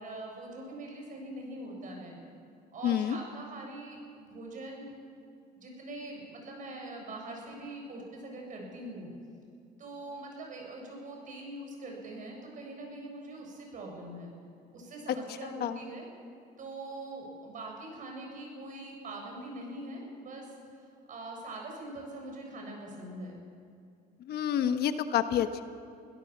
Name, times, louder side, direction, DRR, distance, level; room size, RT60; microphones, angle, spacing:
voice 1, 0.0-2.2 2.7-4.9 5.6-9.1 9.8-14.3 14.7-16.1 16.6-20.5 21.1-23.4, right 2 dB, 50° right, 0 dB, 7.6 m, -43 dB
voice 2, 2.8-3.2 15.6-15.8 24.3-25.6, left 9 dB, 70° left, 9 dB, 1.2 m, -28 dB
24.5 x 16.5 x 7.4 m, 2.4 s
cardioid pair, 110°, 17 cm